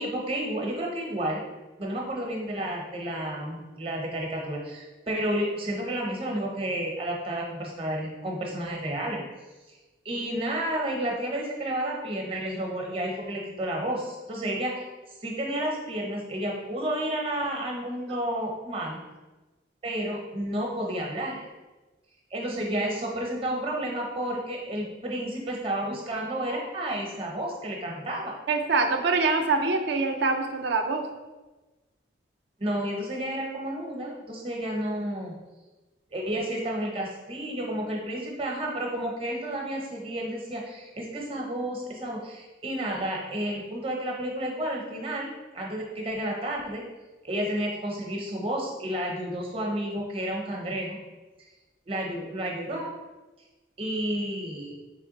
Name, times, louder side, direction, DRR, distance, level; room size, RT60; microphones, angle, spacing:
voice 1, 0.0-1.4 1.8-9.2 10.0-14.7 15.2-19.0 19.8-21.5 22.3-28.4 32.6-35.4 36.1-46.8 47.2-51.0 51.9-52.9 53.8-54.7, right 1 dB, 30° right, -1 dB, 0.7 m, -31 dB
voice 2, 28.5-31.0, right 3 dB, 60° right, 5 dB, 0.4 m, -24 dB
3.3 x 3.2 x 3.9 m, 1.1 s
head